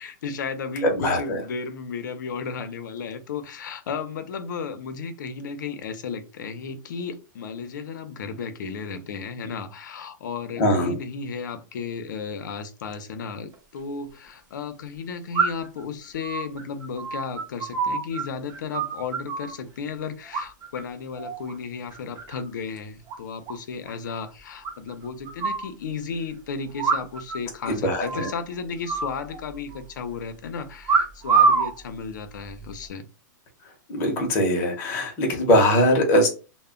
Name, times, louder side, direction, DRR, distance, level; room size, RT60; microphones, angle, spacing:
voice 1, 0.0-33.0, left 5 dB, 70° left, 8 dB, 0.6 m, -34 dB
voice 2, 0.8-1.4 10.6-11.0 27.7-28.3 33.9-36.3, left 1 dB, 20° left, 2 dB, 0.7 m, -21 dB
sound 1, 13.5-13.6 15.3-15.8 16.2-18.2 18.5-19.5 20.3-20.8 21.1-21.5 21.9-22.5 22.8-22.9 23.1-23.2 23.5-23.6 23.9-24.0 24.6-25.7 26.8-27.4 27.6-27.7 28.0-28.4 28.9-29.8 30.8-31.7 32.5-32.8, right 5 dB, 25° right, 0.6 m, -25 dB
2.1 x 2.1 x 3.6 m, 0.32 s
supercardioid pair, 170°, 10 cm